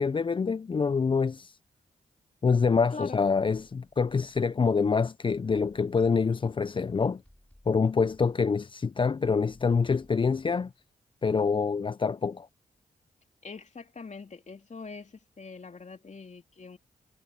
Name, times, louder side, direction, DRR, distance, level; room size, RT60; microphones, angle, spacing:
voice 1, 0.0-1.6 2.4-7.2 7.7-10.7 11.2-12.5, left 5 dB, 30° left, 0.4 m, -26 dB
sound 1, 7.2-8.8 9.2-10.8 11.2-11.5, left 1 dB, 10° left, 5.0 m, -61 dB
voice 2, 13.4-16.8, left 4 dB, 45° left, 2.8 m, -43 dB
supercardioid pair, 50°, 17 cm